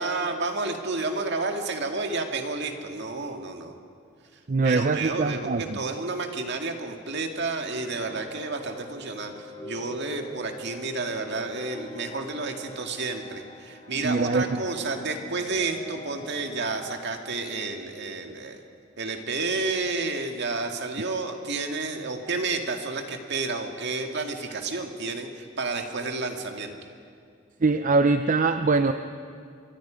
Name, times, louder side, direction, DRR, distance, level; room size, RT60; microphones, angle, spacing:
voice 1, 0.0-3.7 4.6-9.3 9.6-18.6 19.0-26.8, right 3 dB, 60° right, 4 dB, 2.0 m, -30 dB
voice 2, 4.5-5.8 14.0-14.6 27.6-28.9, right 3 dB, 40° right, 9 dB, 0.6 m, -23 dB
sound 1, 7.3-18.5, equal, 20° left, 1.8 m, -44 dB
26.5 x 23.5 x 5.2 m, 2.3 s
head